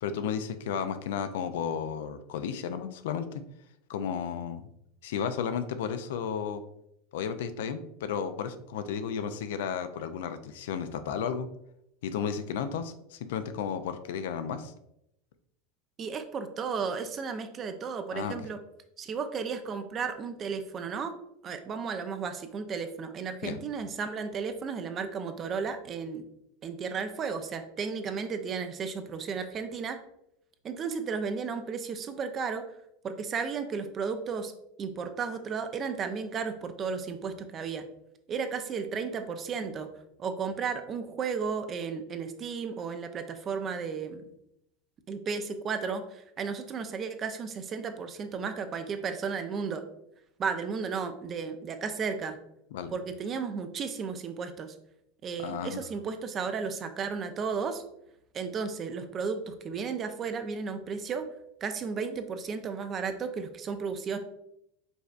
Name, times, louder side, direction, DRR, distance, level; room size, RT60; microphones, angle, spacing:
voice 1, 0.0-3.4 3.9-4.6 5.0-6.6 7.1-11.5 12.0-14.7 18.1-18.4 23.4-23.6 52.7-52.9 55.4-55.8, left 7 dB, 75° left, 10 dB, 0.4 m, -33 dB
voice 2, 16.0-18.6 19.0-21.1 21.4-26.3 26.6-30.0 30.6-32.7 33.0-34.5 34.8-37.9 38.3-39.9 40.2-44.3 45.1-49.8 50.4-52.4 52.9-54.7 55.2-57.8 58.3-61.3 61.6-64.2, right 5 dB, 35° right, 8 dB, 0.5 m, -34 dB
5.2 x 3.2 x 2.4 m, 0.78 s
hypercardioid pair, 95°, 0 cm